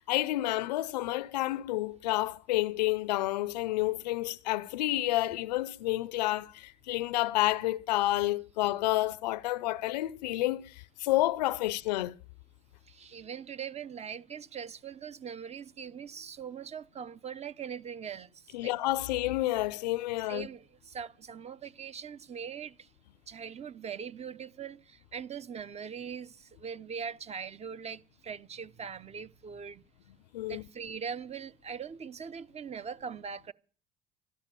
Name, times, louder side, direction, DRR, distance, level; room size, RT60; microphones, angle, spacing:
voice 1, 0.1-10.7 11.0-12.1 18.5-20.5 30.3-30.6, left 17 dB, 80° left, 0.6 m, -29 dB
voice 2, 12.9-18.8 20.3-22.9 23.3-29.8 30.5-33.5, right 7 dB, 30° right, 0.9 m, -41 dB
13.0 x 13.0 x 6.8 m
hypercardioid pair, 75°, 21 cm